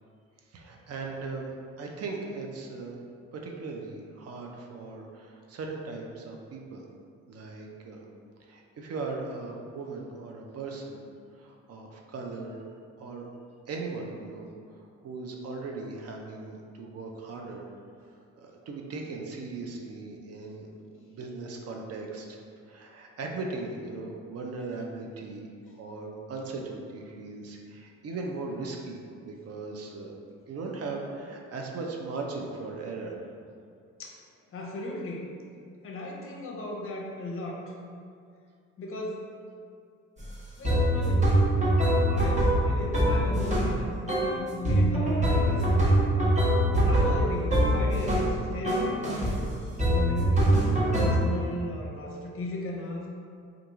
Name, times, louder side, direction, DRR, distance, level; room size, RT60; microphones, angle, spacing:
voice 1, 0.5-1.5 1.8-3.0 3.3-6.9 7.3-8.0 8.4-11.1 11.3-12.6 13.0-13.3 13.7-17.7 18.4-22.3 22.7-30.1 30.5-33.2, right 3 dB, 55° right, 1 dB, 0.5 m, -38 dB
voice 2, 34.5-35.3 35.8-37.7 38.8-39.3 40.6-41.4 42.1-46.1 46.8-49.5 49.9-53.0, left 1 dB, 45° left, -1 dB, 0.6 m, -36 dB
sound 1, 40.2-40.3 40.6-43.7 44.1-44.4 44.6-48.3 48.6-49.4 49.8-51.1, right 1 dB, 25° right, 1.0 m, -23 dB
2.9 x 2.5 x 3.5 m, 2.3 s
cardioid pair, 90°, 30 cm